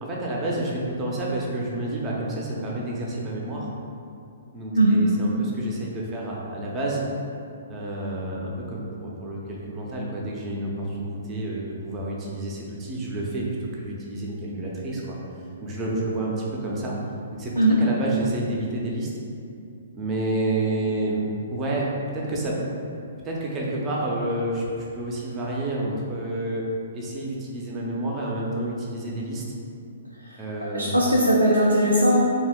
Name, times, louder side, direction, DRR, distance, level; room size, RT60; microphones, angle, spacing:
voice 1, 0.0-3.7 4.5-7.0 7.7-15.2 15.6-16.9 17.3-17.5 17.8-19.1 19.9-21.2 21.5-22.6 22.9-23.0 23.2-26.6 26.9-29.4 30.4-31.0, right 1 dB, 20° right, -4 dB, 0.5 m, -29 dB
voice 2, 30.6-32.2, right 1 dB, 85° right, -4 dB, 0.3 m, -19 dB
2.7 x 2.3 x 3.5 m, 2.6 s
figure-of-eight pair, 120°, 0 cm